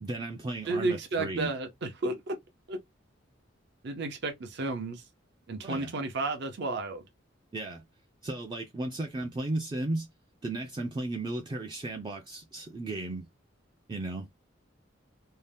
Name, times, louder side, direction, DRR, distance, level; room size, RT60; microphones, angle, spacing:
voice 1, 0.0-1.5 5.6-5.9 7.5-7.8 8.2-10.1 10.4-13.3 13.9-14.3, right 2 dB, 25° right, 0.4 m, -35 dB
voice 2, 0.7-2.4 2.7-2.8 3.8-5.0 5.5-7.0, right 3 dB, 60° right, 0.7 m, -32 dB
2.7 x 2.1 x 3.3 m
head